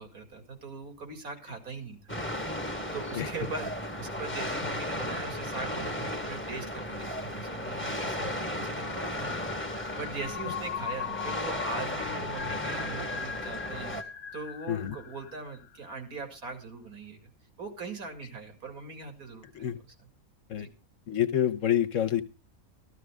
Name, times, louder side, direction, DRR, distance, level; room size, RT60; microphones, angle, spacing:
voice 1, 0.0-2.2 2.9-9.4 10.0-13.9 14.3-17.3 17.6-19.7 20.6-20.7, right 4 dB, 90° right, 5 dB, 2.8 m, -40 dB
sound 1, 2.1-14.0, left 1 dB, 10° left, 1.0 m, -35 dB
sound 2, 8.8-16.1, left 8 dB, 85° left, 1.3 m, -39 dB
voice 2, 21.1-22.2, left 10 dB, 65° left, 14 dB, 1.3 m, -27 dB
14.0 x 13.5 x 3.5 m, 0.28 s
omnidirectional pair, 1.5 m